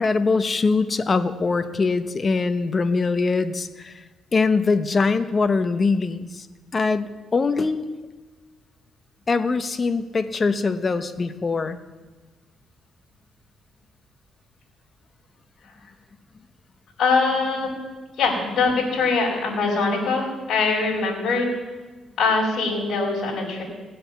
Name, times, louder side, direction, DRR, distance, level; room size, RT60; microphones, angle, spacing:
voice 1, 0.0-4.0 4.3-6.5 6.7-7.9 9.3-11.8 18.5-18.6, left 4 dB, 35° left, 11 dB, 0.9 m, -22 dB
voice 2, 17.0-17.8 18.2-21.5 22.2-23.6, left 4 dB, 60° left, -5 dB, 4.6 m, -22 dB
18.0 x 7.8 x 7.0 m, 1.3 s
cardioid pair, 90°, 0 cm